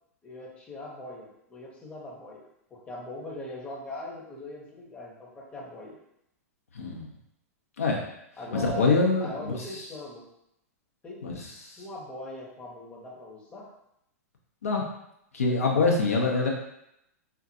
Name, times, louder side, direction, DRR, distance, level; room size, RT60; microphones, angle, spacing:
voice 1, 0.2-2.4 2.7-6.0 8.4-8.9 9.2-10.3 11.0-11.2 11.8-13.7 16.2-16.3, left 1 dB, 15° left, -4 dB, 0.8 m, -40 dB
voice 2, 6.7-7.1 7.8-8.0 8.5-9.8 11.2-11.8 14.6-14.8 15.3-16.5, left 3 dB, 65° left, -1 dB, 0.6 m, -25 dB
3.8 x 2.1 x 2.7 m, 0.79 s
figure-of-eight pair, 100°, 8 cm